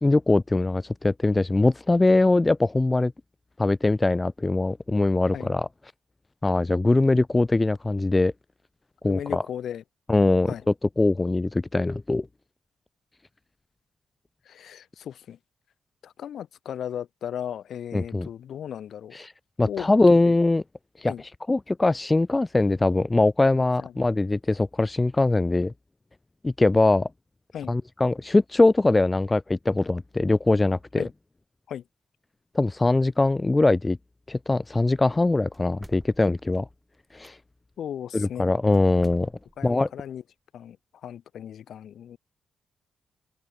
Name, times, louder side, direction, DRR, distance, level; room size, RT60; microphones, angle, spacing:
voice 1, 0.0-3.1 3.6-5.7 6.4-8.3 9.0-9.4 10.1-12.3 17.9-18.3 19.1-19.3 19.6-20.6 21.0-21.1 21.5-25.7 26.4-27.1 27.7-31.0 32.5-34.0 34.3-36.7 37.1-37.4 38.1-39.3 39.6-39.9, left 2 dB, 20° left, 0.7 m, -22 dB
voice 2, 9.0-9.8 10.5-10.6 14.5-15.4 16.0-19.2 19.7-19.9 20.3-20.4 21.1-21.2 23.8-23.9 27.5-27.8 31.0-31.1 31.7-31.8 37.8-38.5 38.8-38.9 39.6-40.2 40.5-40.8 41.0-42.2, left 9 dB, 75° left, 2.8 m, -36 dB
sound 1, 35.5-37.3 38.7-39.7, right 1 dB, 5° right, 7.1 m, -50 dB
open air
cardioid pair, 90°, 0 cm